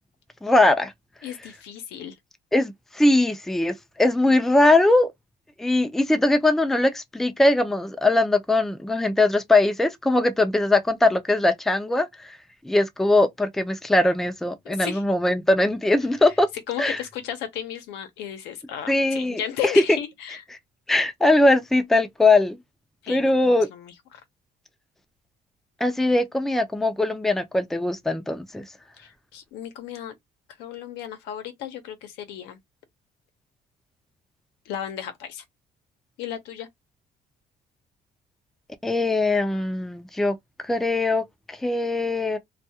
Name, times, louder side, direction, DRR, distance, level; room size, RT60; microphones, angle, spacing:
voice 1, 0.4-0.9 2.5-5.1 5.6-12.1 12.6-16.5 16.8-17.0 18.9-19.4 20.9-22.6 23.1-23.7 25.8-28.6 38.8-40.4 40.6-42.4, left 2 dB, ahead, 0.4 m, -21 dB
voice 2, 1.2-2.2 14.6-15.0 16.2-16.3 16.7-20.4 23.0-23.9 29.0-30.1 30.6-32.6 34.7-35.4 36.2-36.7, left 10 dB, 90° left, 0.7 m, -34 dB
2.3 x 2.2 x 2.7 m
cardioid pair, 110°, 17 cm